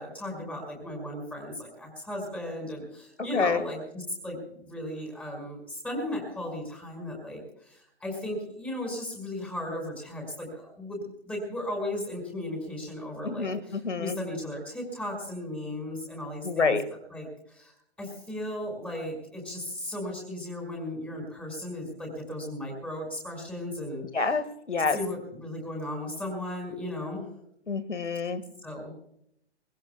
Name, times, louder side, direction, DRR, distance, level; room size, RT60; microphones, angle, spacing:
voice 1, 0.0-16.8 17.1-17.7 18.0-24.1 24.9-27.3 28.6-29.0, left 1 dB, 5° left, 1 dB, 5.5 m, -36 dB
voice 2, 3.2-3.6 13.2-14.2 16.4-16.9 24.1-25.0 27.7-28.4, left 4 dB, 85° left, 12 dB, 1.9 m, -27 dB
23.5 x 20.5 x 2.3 m, 0.71 s
figure-of-eight pair, 135°, 34 cm